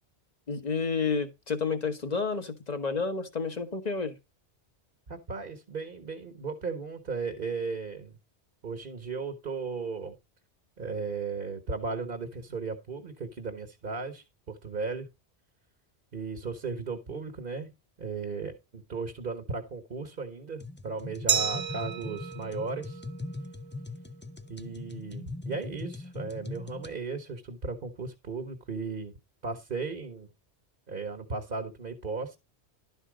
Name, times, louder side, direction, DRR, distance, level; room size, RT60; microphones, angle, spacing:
voice 1, 0.5-4.2, left 5 dB, 40° left, 1.3 m, -30 dB
voice 2, 5.1-8.1 8.6-10.1 10.8-15.1 16.1-17.7 18.0-23.0 24.5-29.1 29.4-30.3 30.9-32.4, right 4 dB, 50° right, 1.4 m, -36 dB
sound 1, 20.6-26.9, left 2 dB, 15° left, 0.4 m, -41 dB
Glass, 21.3-24.0, right 8 dB, 90° right, 1.0 m, -32 dB
11.5 x 4.6 x 5.0 m
omnidirectional pair, 1.1 m